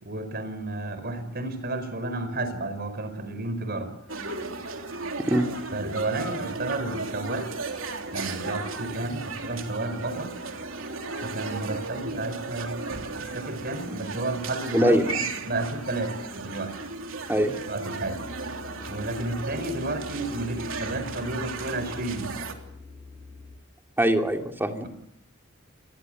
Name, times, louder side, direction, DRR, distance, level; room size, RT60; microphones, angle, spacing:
voice 1, 0.0-3.9 5.7-7.5 8.1-10.3 11.2-12.7 13.3-14.9 15.4-16.7 17.7-18.2 18.9-22.5, right 2 dB, 50° right, 10 dB, 5.0 m, -31 dB
sound 1, 4.1-22.5, right 3 dB, 80° right, 3.3 m, -35 dB
voice 2, 14.7-15.3 17.3-17.6 24.0-24.9, right 1 dB, 10° right, 4 dB, 2.6 m, -22 dB
sound 2, 18.0-23.6, left 3 dB, 35° right, 7.5 m, -44 dB
28.0 x 20.5 x 7.9 m, 0.74 s
head